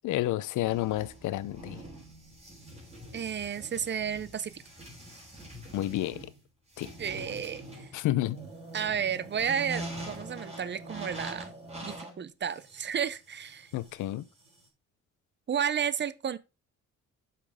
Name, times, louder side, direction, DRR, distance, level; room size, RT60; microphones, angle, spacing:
voice 1, 0.0-1.8 5.7-6.3 6.8-6.9 7.9-8.4 13.7-14.2, left 14 dB, 80° left, 0.6 m, -30 dB
sound 1, 0.6-14.7, right 1 dB, 20° right, 3.9 m, -44 dB
voice 2, 3.1-4.6 7.0-7.9 8.7-11.5 11.8-13.7 15.5-16.4, right 8 dB, 35° right, 0.6 m, -32 dB
8.2 x 5.9 x 3.5 m
cardioid pair, 90°, 30 cm